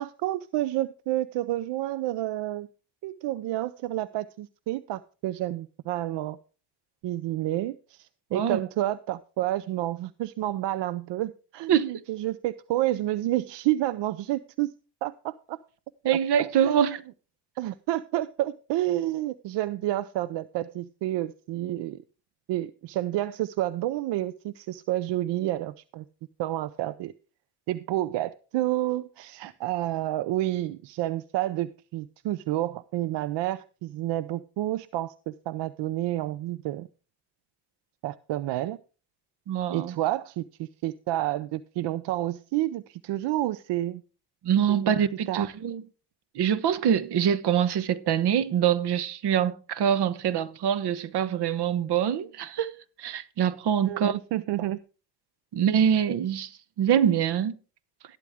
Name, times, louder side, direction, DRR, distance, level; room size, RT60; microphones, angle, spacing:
voice 1, 0.0-2.7 3.0-6.4 7.0-14.7 15.0-15.6 16.6-16.8 17.6-22.0 22.5-26.0 26.4-27.1 27.7-36.9 38.0-38.8 39.7-44.0 44.7-45.0 45.3-45.5 53.8-54.8, right 15 dB, 85° right, 0.6 m, -29 dB
voice 2, 11.7-12.0 16.0-17.0 39.5-39.9 44.4-45.8 46.3-52.7 53.0-54.2 55.5-56.5 56.8-57.5, right 9 dB, 70° right, 0.9 m, -24 dB
12.5 x 12.0 x 3.5 m
cardioid pair, 90°, 42 cm